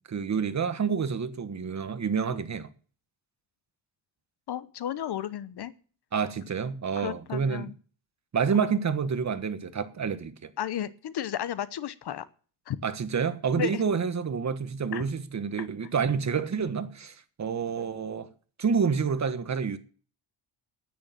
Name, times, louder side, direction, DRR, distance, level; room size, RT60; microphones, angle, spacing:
voice 1, 0.0-2.7 6.1-7.7 8.3-10.5 12.8-18.3 18.6-19.8, right 6 dB, 35° right, 1.3 m, -28 dB
voice 2, 4.5-5.7 7.0-7.7 10.6-12.2 12.7-12.8 13.6-13.8 14.9-15.0 15.6-15.7, left 10 dB, 60° left, 1.0 m, -33 dB
10.0 x 9.4 x 7.5 m
cardioid pair, 115°, 45 cm